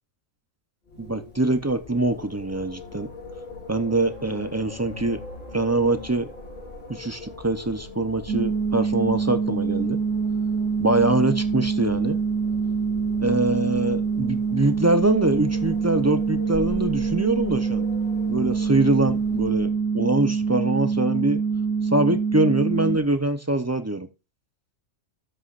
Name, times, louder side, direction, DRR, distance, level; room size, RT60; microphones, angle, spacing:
Wind, 0.8-19.9, left 2 dB, 35° left, 3.0 m, -41 dB
voice 1, 1.0-3.1 3.7-5.2 5.5-6.3 6.9-10.0 10.8-12.2 13.2-17.9 18.3-21.4 21.9-24.1, right 2 dB, 25° right, 9 dB, 0.4 m, -24 dB
sound 1, 8.3-23.0, right 5 dB, 80° right, 1.3 m, -25 dB
13.0 x 8.8 x 2.5 m, 0.29 s
omnidirectional pair, 1.4 m